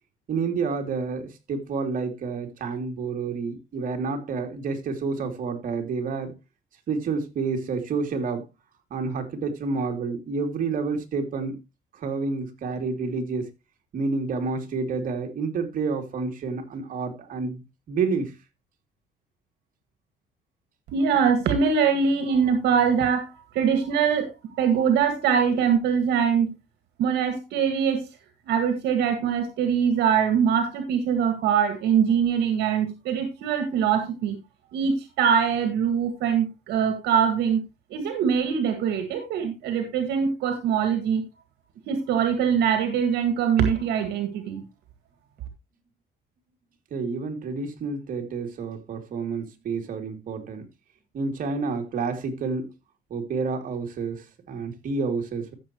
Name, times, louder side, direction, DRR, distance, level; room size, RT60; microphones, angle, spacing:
voice 1, 0.3-6.3 6.9-8.5 8.9-11.6 11.9-13.5 13.9-17.6 17.9-18.4 46.9-50.6 51.1-52.7 53.1-55.5, right 4 dB, 55° right, 2.8 m, -29 dB
voice 2, 20.9-26.5 27.0-28.0 28.5-34.4 34.7-37.6 37.9-41.2 41.9-44.6, right 7 dB, 80° right, 2.0 m, -23 dB
14.0 x 7.3 x 3.0 m
cardioid pair, 110°, 17 cm